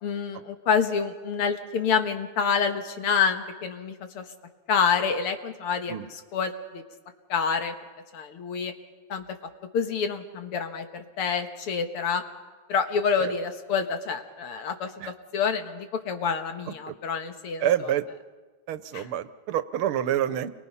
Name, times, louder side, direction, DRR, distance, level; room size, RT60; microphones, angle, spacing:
voice 1, 0.0-4.2 4.7-6.8 7.3-7.7 8.1-8.7 9.1-9.2 9.7-12.2 12.7-17.7 18.9-19.1, left 6 dB, 85° left, 7 dB, 2.4 m, -27 dB
voice 2, 17.6-18.1 18.7-20.5, right 11 dB, 75° right, 13 dB, 1.7 m, -27 dB
29.5 x 23.0 x 5.6 m, 1.3 s
omnidirectional pair, 2.4 m